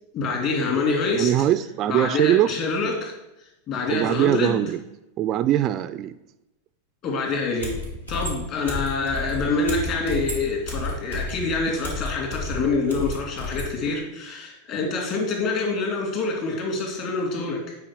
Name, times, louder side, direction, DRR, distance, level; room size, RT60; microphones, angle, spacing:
voice 1, 0.1-1.3 1.9-3.1 3.7-4.7 7.0-7.8 8.1-17.8, left 3 dB, 40° left, 0 dB, 2.5 m, -26 dB
voice 2, 1.1-2.5 3.9-4.8 5.2-6.2, right 12 dB, 35° right, 13 dB, 0.3 m, -22 dB
sound 1, 7.3-7.4 7.6-13.7, left 1 dB, 85° left, 2.3 m, -32 dB
8.4 x 4.7 x 5.0 m, 0.93 s
figure-of-eight pair, 90°, 0 cm